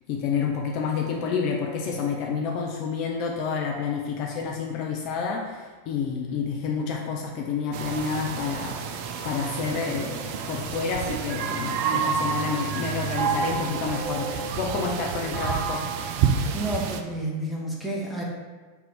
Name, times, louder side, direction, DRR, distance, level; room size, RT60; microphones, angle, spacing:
voice 1, 0.1-15.8, left 5 dB, 40° left, 0 dB, 0.4 m, -29 dB
sound 1, 7.7-17.0, right 6 dB, 45° right, 0.3 m, -29 dB
voice 2, 16.5-18.2, right 1 dB, ahead, -4 dB, 0.9 m, -30 dB
3.3 x 2.6 x 4.1 m, 1.4 s
figure-of-eight pair, 90°, 0 cm